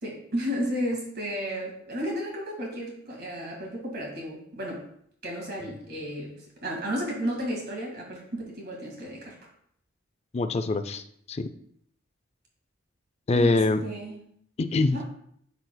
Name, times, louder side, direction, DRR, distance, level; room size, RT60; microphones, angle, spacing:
voice 1, 0.0-4.9 5.2-6.3 6.6-9.4 13.3-14.2 14.9-15.0, equal, 50° right, -1 dB, 1.9 m, -33 dB
voice 2, 10.3-11.0 11.3-11.5 13.3-13.8 14.6-15.0, left 3 dB, 30° left, 10 dB, 0.4 m, -24 dB
12.0 x 4.1 x 2.2 m, 0.66 s
head